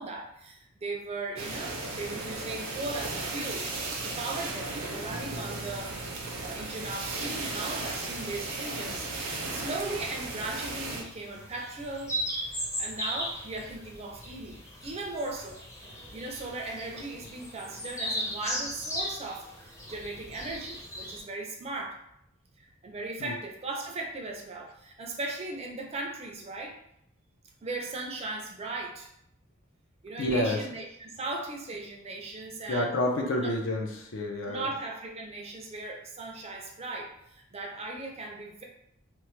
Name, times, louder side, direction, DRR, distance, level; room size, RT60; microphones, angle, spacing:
voice 1, 0.0-3.6 4.0-6.0 6.4-9.1 9.5-12.2 12.8-15.6 15.9-22.0 22.6-26.8 27.6-29.1 30.0-32.9 33.4-33.5 34.5-38.6, right 2 dB, 30° right, 0 dB, 0.4 m, -38 dB
sound 1, 1.4-11.0, right 3 dB, 85° right, 0.6 m, -36 dB
Bass guitar, 5.1-9.0, right 1 dB, 50° left, 1.0 m, -48 dB
sound 2, 10.5-21.2, equal, 15° left, 0.6 m, -37 dB
voice 2, 30.2-30.6 32.7-34.7, left 1 dB, 65° left, 1 dB, 0.5 m, -29 dB
3.1 x 2.1 x 3.0 m, 0.75 s
head